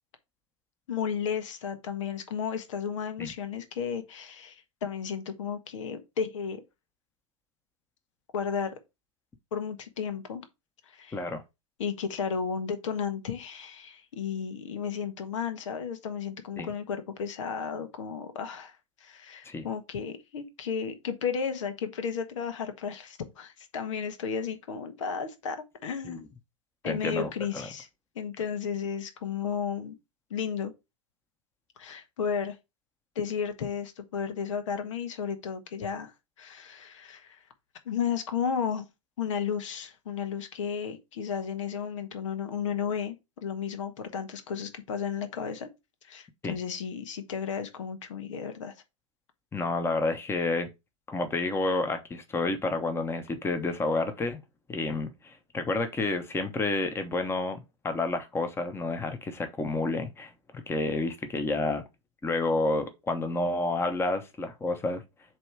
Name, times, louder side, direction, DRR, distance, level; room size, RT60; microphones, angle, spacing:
voice 1, 0.9-6.6 8.3-8.8 9.5-10.4 10.9-11.2 11.8-26.3 26.8-27.9 28.1-30.0 30.3-30.7 31.8-32.6 33.1-37.4 37.8-38.9 39.2-45.7 46.0-48.7, left 7 dB, 70° left, 1.4 m, -33 dB
voice 2, 26.8-27.7 46.4-46.5 49.5-50.7 51.1-54.4 54.7-57.6 57.8-61.8 62.2-65.0, left 2 dB, 15° left, 1.1 m, -30 dB
7.6 x 3.1 x 4.7 m
hypercardioid pair, 105°, 17 cm